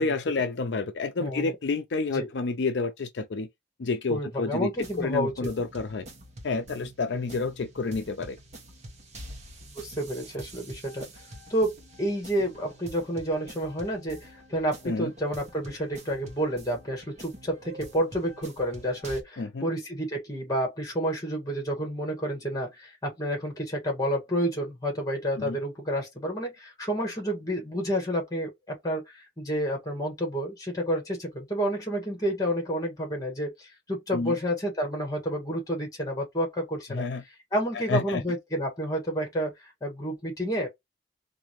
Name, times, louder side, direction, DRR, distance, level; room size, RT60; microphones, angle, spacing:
voice 1, 0.0-3.5 3.8-4.7 5.0-6.1 6.4-8.4 14.8-15.1 19.4-19.7 25.4-25.6 34.1-34.4 36.9-37.2 37.9-38.2, left 3 dB, 70° left, 0.5 m, -29 dB
voice 2, 1.2-1.5 2.1-2.3 4.1-5.5 7.1-7.2 9.7-11.1 11.5-37.0 37.5-40.7, equal, 20° left, 1.6 m, -30 dB
sound 1, 4.7-19.2, right 1 dB, 40° right, 1.1 m, -46 dB
3.7 x 2.7 x 3.0 m
head